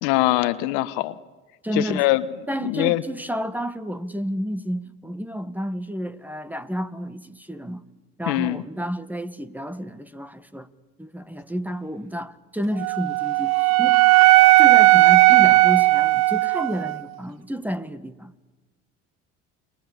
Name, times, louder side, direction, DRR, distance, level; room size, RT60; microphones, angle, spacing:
voice 1, 0.0-1.1 1.7-2.2 2.6-3.0 8.3-8.6, left 18 dB, 75° left, 1.3 m, -22 dB
voice 2, 1.6-2.0 2.5-7.8 8.2-10.7 11.0-14.0 14.6-18.3, equal, 5° right, 1.6 m, -30 dB
Wind instrument woodwind instrument, 12.8-17.0, right 19 dB, 70° right, 1.0 m, -16 dB
29.5 x 21.5 x 8.4 m
hypercardioid pair, 75°, 37 cm